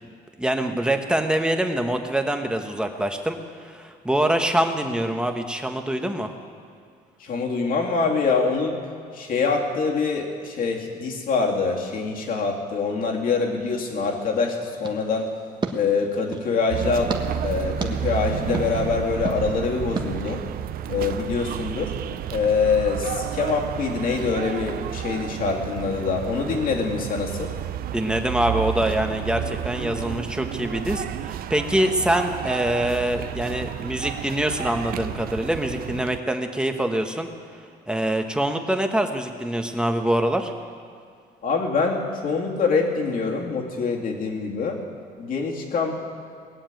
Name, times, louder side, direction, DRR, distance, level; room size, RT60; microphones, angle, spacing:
voice 1, 0.4-6.3 27.9-37.3 37.9-40.5, right 1 dB, 5° right, 5 dB, 1.2 m, -24 dB
voice 2, 7.2-8.8 9.1-15.3 15.7-17.1 17.4-20.4 20.9-21.9 22.3-27.5 41.4-44.8 45.2-45.9, left 4 dB, 55° left, 0 dB, 2.5 m, -24 dB
sound 1, 14.8-16.5 17.1-17.2 17.8-17.9 18.5-18.7 19.2-19.4 20.0-20.1, right 4 dB, 25° right, 1.3 m, -32 dB
sound 2, 16.7-36.2, right 11 dB, 60° right, 0.5 m, -31 dB
19.5 x 7.3 x 9.1 m, 2.3 s
cardioid pair, 110°, 17 cm